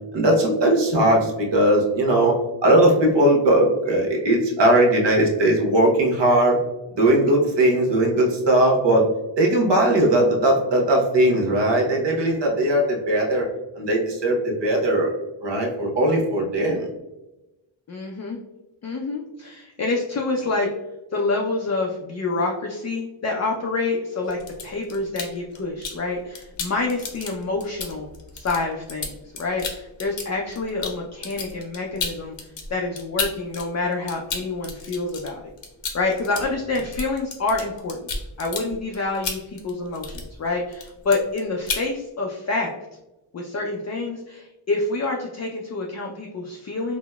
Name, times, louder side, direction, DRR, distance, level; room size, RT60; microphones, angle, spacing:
voice 1, 0.1-2.4 2.6-6.6 7.0-9.1 9.4-13.5 13.8-15.1 15.4-16.9, right 1 dB, 60° right, 0 dB, 1.0 m, -19 dB
voice 2, 17.9-18.4 18.8-20.7 21.1-28.1 28.3-35.4 35.9-42.7 43.3-47.0, left 3 dB, 35° left, -1 dB, 0.5 m, -27 dB
sound 1, 24.2-26.0 26.3-33.6 33.9-40.5 40.7-41.4 41.7-41.9, left 4 dB, 65° left, 0.8 m, -32 dB
3.8 x 2.0 x 2.2 m, 0.98 s
cardioid pair, 55°, 49 cm